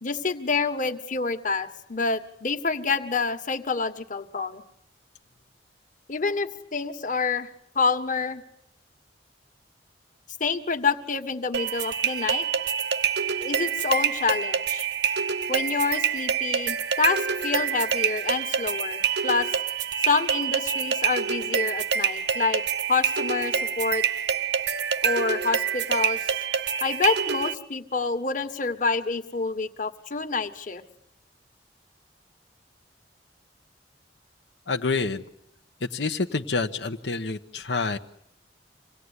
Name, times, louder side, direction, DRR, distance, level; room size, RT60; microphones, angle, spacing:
voice 1, 0.0-4.6 6.1-7.5 7.7-8.4 10.4-12.4 13.4-14.9 15.5-19.5 20.1-22.6 22.9-24.0 25.0-26.2 26.8-30.8, left 4 dB, 45° left, 7 dB, 1.6 m, -27 dB
sound 1, 11.5-27.5, right 7 dB, 65° right, 1.1 m, -26 dB
voice 2, 34.7-35.2 35.9-38.0, left 4 dB, 75° left, 4 dB, 1.0 m, -27 dB
26.5 x 18.5 x 9.7 m, 0.72 s
head